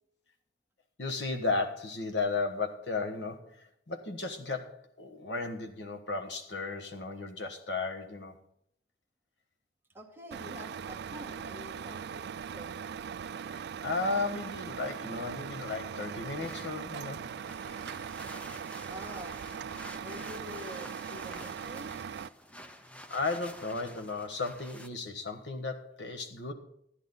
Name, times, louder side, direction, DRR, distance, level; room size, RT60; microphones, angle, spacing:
voice 1, 1.0-8.4 13.4-17.2 23.1-26.5, left 3 dB, 70° left, 5 dB, 1.3 m, -35 dB
voice 2, 9.9-12.7 18.9-19.4 20.0-22.2 22.5-22.8, equal, 15° right, 1 dB, 1.4 m, -47 dB
Truck, 10.3-22.3, right 7 dB, 60° right, 0.3 m, -40 dB
sound 1, 16.1-24.9, equal, 5° left, 0.7 m, -50 dB
13.0 x 10.5 x 4.0 m, 0.71 s
head